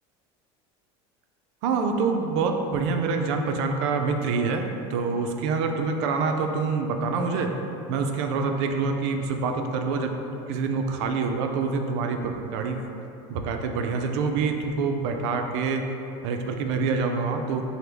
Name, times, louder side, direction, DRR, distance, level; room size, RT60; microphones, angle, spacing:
voice 1, 1.6-7.5 7.9-10.1 10.5-12.8 13.3-15.8 16.2-17.6, right 4 dB, 75° right, 4 dB, 0.4 m, -26 dB
5.9 x 2.1 x 3.3 m, 2.8 s
cardioid pair, 150°, 14 cm